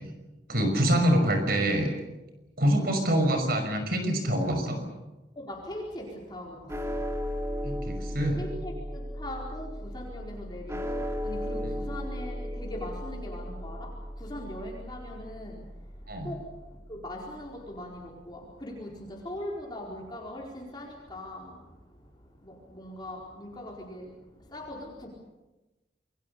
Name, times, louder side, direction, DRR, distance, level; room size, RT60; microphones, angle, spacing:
voice 1, 0.5-1.9 2.6-4.8 7.6-8.4 11.6-11.7 16.1-16.3, equal, 55° right, 6 dB, 5.8 m, -25 dB
voice 2, 5.4-6.0 6.3-6.5 8.4-9.7 9.9-11.0 11.2-13.8 14.2-15.5 16.2-16.4 16.9-18.0 18.3-18.9 19.2-21.5 22.7-24.1 24.5-24.9, left 1 dB, 25° left, -2 dB, 4.4 m, -40 dB
sound 1, 6.7-17.1, equal, 15° right, 2.3 m, -36 dB
28.0 x 22.0 x 6.8 m, 1.1 s
head